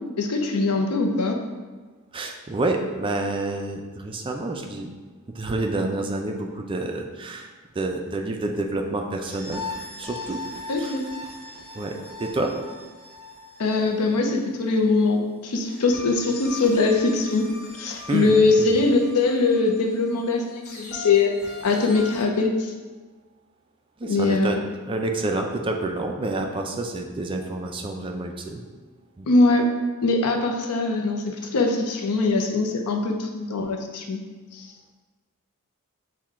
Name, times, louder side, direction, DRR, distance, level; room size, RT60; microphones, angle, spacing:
voice 1, 0.2-1.4 10.7-11.0 13.6-17.5 17.7-21.3 21.6-22.7 24.0-24.6 29.3-29.7 30.0-34.2 34.5-34.7, left 3 dB, 85° left, 3 dB, 0.6 m, -22 dB
voice 2, 2.1-4.9 5.3-9.6 10.0-10.4 10.8-11.0 11.7-12.6 18.1-18.8 24.0-24.6 24.9-28.6 29.2-29.3, right 2 dB, 25° right, 3 dB, 0.3 m, -28 dB
sound 1, 9.2-14.8 15.6-22.2, left 3 dB, 45° left, 1.2 m, -40 dB
6.2 x 2.2 x 3.6 m, 1.3 s
head